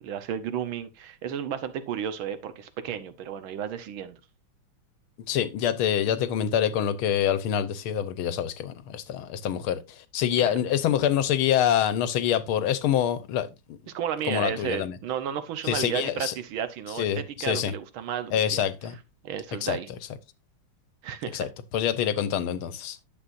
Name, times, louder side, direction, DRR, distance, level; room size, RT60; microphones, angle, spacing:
voice 1, 0.0-4.2 10.4-10.5 13.9-18.6 19.2-19.9 21.0-21.5, right 9 dB, 75° right, 1.8 m, -33 dB
voice 2, 5.3-13.8 14.3-15.0 15.6-16.3 17.0-17.7 18.3-19.0 19.6-19.8 21.3-21.5 21.7-23.0, left 9 dB, 85° left, 1.7 m, -26 dB
10.5 x 7.2 x 2.6 m
omnidirectional pair, 2.2 m